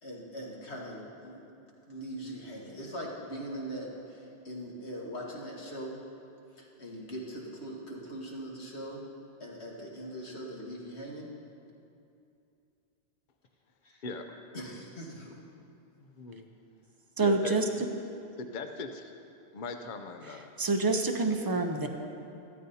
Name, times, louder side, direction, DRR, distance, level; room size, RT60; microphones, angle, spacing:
voice 1, 0.0-1.4 1.9-6.0 6.5-9.1 9.4-11.3 13.8-14.0 14.3-15.4, equal, 70° left, -3 dB, 1.9 m, -41 dB
voice 2, 16.0-16.5 17.2-17.6 18.4-19.1 19.5-20.5, left 4 dB, 50° left, 6 dB, 0.7 m, -39 dB
voice 3, 17.2-17.6 20.2-21.9, right 3 dB, 25° right, 4 dB, 0.5 m, -27 dB
14.0 x 13.0 x 2.8 m, 2.7 s
omnidirectional pair, 1.2 m